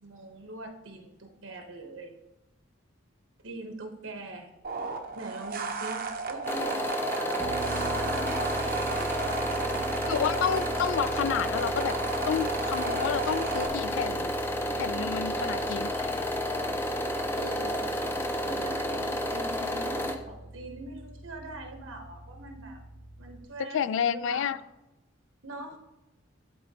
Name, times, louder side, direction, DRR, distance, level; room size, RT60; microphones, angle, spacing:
voice 1, 0.0-2.2 3.4-4.5 5.2-7.7 7.9-10.0 13.2-13.3 15.3-15.8 17.3-17.8 18.5-22.8 23.2-24.6 25.4-25.8, right 2 dB, 80° right, 4 dB, 1.0 m, -42 dB
sound 1, 4.6-13.7, right 4 dB, 45° right, 0.6 m, -35 dB
sound 2, 6.5-20.2, equal, 10° left, 0.5 m, -31 dB
sound 3, 7.4-23.4, right 2 dB, 30° left, 1.6 m, -42 dB
voice 2, 10.0-12.0 12.3-14.3 14.8-16.1 23.7-24.6, left 8 dB, 70° left, 15 dB, 0.3 m, -30 dB
12.0 x 4.0 x 2.8 m, 0.96 s
head